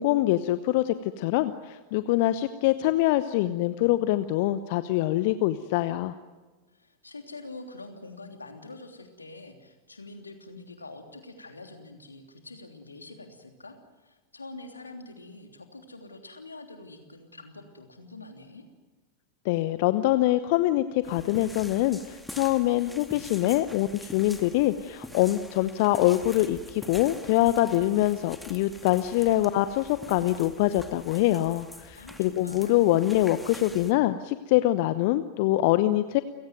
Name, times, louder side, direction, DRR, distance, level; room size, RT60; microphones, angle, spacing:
voice 1, 0.0-6.1 19.4-36.2, left 15 dB, 50° left, 13 dB, 0.9 m, -24 dB
voice 2, 6.7-18.7 32.0-32.8, left 2 dB, 80° left, 5 dB, 3.2 m, -45 dB
sound 1, 21.0-33.9, left 1 dB, 5° left, 2.1 m, -46 dB
29.5 x 17.5 x 9.4 m, 1.2 s
figure-of-eight pair, 90°, 0 cm